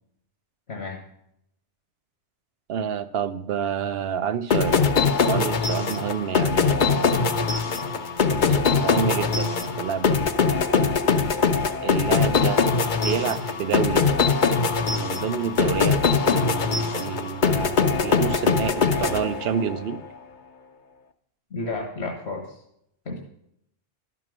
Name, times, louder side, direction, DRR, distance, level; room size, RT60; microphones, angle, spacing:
voice 1, 0.7-1.0 21.5-22.6 23.0-23.2, left 3 dB, 70° left, 2 dB, 1.6 m, -31 dB
voice 2, 2.7-4.9 5.2-7.2 8.3-10.2 11.8-12.7 13.0-14.1 14.9-20.0, right 8 dB, 65° right, 13 dB, 0.8 m, -29 dB
sound 1, 4.5-19.8, left 5 dB, 50° left, 0.8 m, -22 dB
12.0 x 6.0 x 6.1 m, 0.75 s
omnidirectional pair, 1.2 m